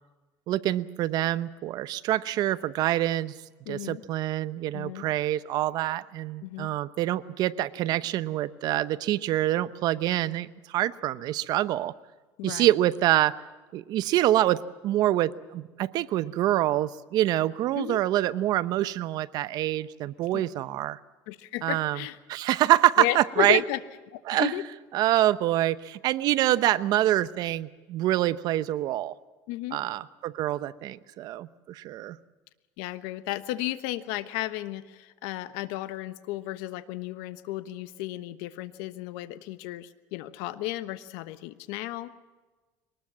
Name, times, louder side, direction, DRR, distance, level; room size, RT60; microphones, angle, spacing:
voice 1, 0.5-3.3 3.7-11.9 12.4-13.3 13.7-21.0 21.6-22.0 22.3-23.6 24.3-24.5 24.9-29.1 29.7-32.2, right 14 dB, 60° right, 15 dB, 0.9 m, -26 dB
voice 2, 3.7-4.0 4.7-5.0 6.4-6.7 12.4-12.7 17.7-18.0 20.3-20.4 21.3-22.2 23.0-23.8 24.1-24.7 29.5-29.8 32.8-42.1, left 16 dB, 85° left, 12 dB, 1.2 m, -33 dB
23.5 x 19.5 x 7.4 m, 1.2 s
cardioid pair, 125°, 8 cm